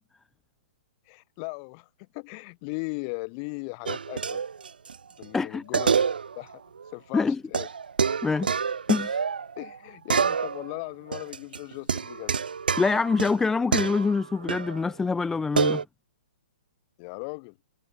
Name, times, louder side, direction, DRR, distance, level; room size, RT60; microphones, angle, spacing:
voice 1, 1.1-1.9 2.1-4.4 5.2-6.0 6.3-6.6 6.9-7.7 9.6-12.3 17.0-17.6, left 36 dB, 35° left, 3.0 m, -37 dB
sound 1, 3.9-5.0 5.2-5.3 5.7-6.5 6.8-6.9 7.5-9.8 10.1-10.8 11.1-14.8 15.5-15.8, right 6 dB, 80° right, 0.4 m, -27 dB
voice 2, 8.9-9.2 12.8-15.8, left 4 dB, 10° left, 0.3 m, -25 dB
figure-of-eight pair, 125°, 5 cm